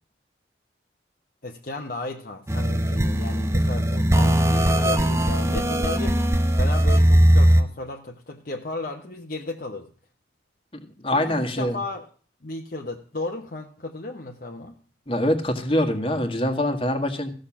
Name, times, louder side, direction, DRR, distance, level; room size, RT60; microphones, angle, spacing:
voice 1, 1.4-6.2 6.5-9.9 11.1-12.1 12.4-14.8, left 2 dB, 50° left, 1 dB, 1.1 m, -34 dB
sound 1, 2.5-7.6, equal, 15° right, 0.8 m, -19 dB
voice 2, 10.7-11.8 15.1-17.3, left 1 dB, 30° left, 5 dB, 1.7 m, -24 dB
15.5 x 6.5 x 7.3 m, 0.41 s
head